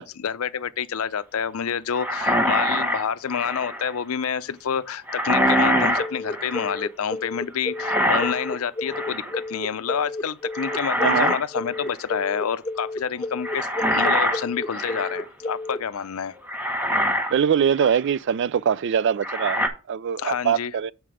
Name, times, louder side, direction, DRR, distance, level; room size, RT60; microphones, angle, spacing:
voice 1, 0.0-16.4 20.2-20.7, left 7 dB, 70° left, 0.5 m, -28 dB
sound 1, 2.0-3.9 5.1-6.8 7.8-8.6 8.9-9.4 10.5-11.4 11.7-12.0 13.4-15.3 16.0-16.1 16.5-17.4 17.8-18.0 19.2-19.7, equal, 10° right, 1.0 m, -24 dB
sound 2, 6.0-15.8, left 2 dB, 15° left, 0.5 m, -32 dB
voice 2, 11.0-11.3 17.3-20.9, right 8 dB, 55° right, 0.3 m, -23 dB
7.7 x 4.5 x 4.9 m
head